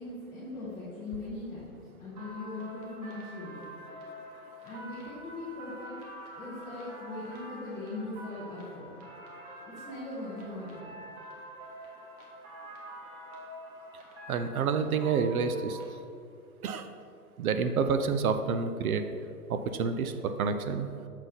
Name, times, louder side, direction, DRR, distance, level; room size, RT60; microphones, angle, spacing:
voice 1, 0.0-3.7 4.6-6.0 6.3-9.0 9.7-11.0, left 2 dB, 10° left, -11 dB, 0.6 m, -40 dB
sound 1, 2.1-15.9, right 1 dB, 25° right, 0.8 m, -46 dB
voice 2, 14.3-15.8 16.6-16.9 17.4-19.0 19.5-20.9, right 5 dB, 70° right, 8 dB, 0.6 m, -28 dB
6.4 x 4.1 x 4.0 m, 2.4 s
hypercardioid pair, 145°, 45 cm